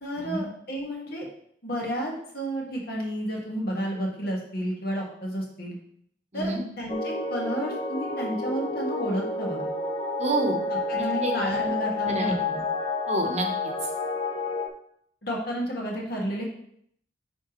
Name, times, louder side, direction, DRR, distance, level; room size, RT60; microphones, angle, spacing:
voice 1, 0.0-1.3 1.6-5.8 6.3-9.7 10.9-12.6 15.2-16.4, equal, 55° left, -2 dB, 1.6 m, -31 dB
sound 1, 6.9-14.7, left 3 dB, 30° left, 0.4 m, -29 dB
voice 2, 10.2-10.6 11.0-11.3 12.0-12.3 13.1-13.7, right 2 dB, 40° right, 3 dB, 0.9 m, -28 dB
9.9 x 3.5 x 3.0 m, 0.68 s
head